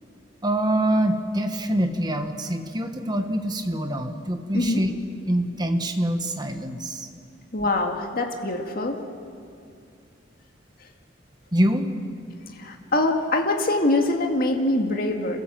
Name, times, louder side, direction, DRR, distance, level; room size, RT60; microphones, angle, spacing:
voice 1, 0.4-4.9 5.3-7.1 11.5-11.9, right 1 dB, 20° right, 6 dB, 1.5 m, -25 dB
voice 2, 4.5-4.9 7.5-9.0 12.5-15.4, left 2 dB, 50° left, 2 dB, 2.1 m, -24 dB
28.0 x 16.0 x 7.6 m, 2.4 s
head